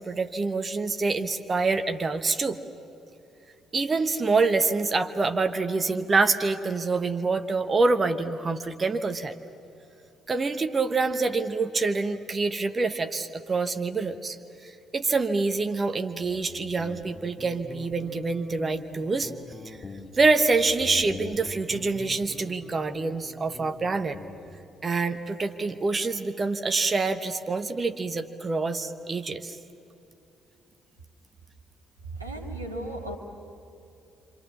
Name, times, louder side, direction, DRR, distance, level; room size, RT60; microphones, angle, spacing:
voice 1, 0.0-2.6 3.7-9.4 10.3-14.4 14.6-19.3 19.6-19.8 20.1-24.2 24.8-29.6, right 3 dB, 30° right, 8 dB, 1.2 m, -26 dB
Guitar, 16.2-24.7, left 3 dB, 30° left, 2.6 m, -44 dB
voice 2, 32.1-33.2, right 1 dB, 90° right, 0 dB, 1.8 m, -35 dB
28.0 x 26.0 x 7.2 m, 2.7 s
figure-of-eight pair, 45°, 0 cm